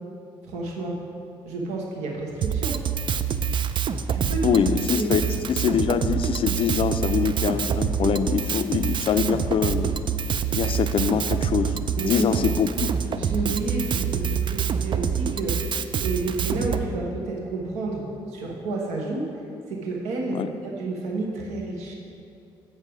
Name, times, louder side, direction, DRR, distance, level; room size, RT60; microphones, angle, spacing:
voice 1, 0.4-1.0 1.4-2.8 4.1-4.6 5.0-5.1 12.0-12.4 13.2-15.7 16.0-19.3 19.7-21.9, right 3 dB, 75° right, -1 dB, 1.0 m, -30 dB
Drum kit, 2.4-16.8, right 7 dB, 40° right, 0.4 m, -26 dB
voice 2, 4.4-5.2 5.5-9.9 10.5-12.9 20.3-20.5, left 7 dB, 50° left, 10 dB, 0.4 m, -24 dB
7.3 x 5.5 x 4.9 m, 2.7 s
hypercardioid pair, 50°, 12 cm